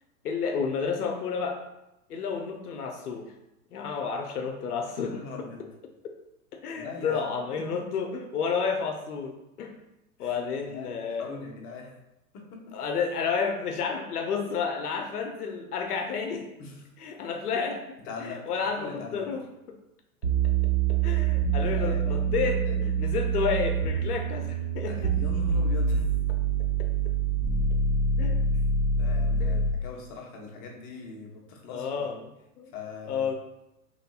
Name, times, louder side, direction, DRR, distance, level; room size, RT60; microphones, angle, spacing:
voice 1, 0.2-1.6 2.1-3.3 3.7-5.5 6.5-9.8 10.2-11.2 12.7-16.5 17.0-17.8 18.2-19.4 21.0-25.1 28.2-28.4 29.4-29.6 31.7-32.3 32.6-32.7 33.1-33.3, left 5 dB, 85° left, 4 dB, 0.5 m, -31 dB
voice 2, 5.1-5.7 6.7-7.2 7.6-7.7 10.2-11.9 12.3-12.7 16.6-16.8 18.0-18.4 18.8-19.3 21.3-22.9 24.9-26.0 29.0-32.2 32.7-33.3, left 4 dB, 30° left, 0 dB, 0.6 m, -42 dB
sound 1, 20.2-29.8, right 4 dB, 30° right, 0.4 m, -26 dB
3.0 x 2.6 x 2.3 m, 0.89 s
hypercardioid pair, 105°, 45 cm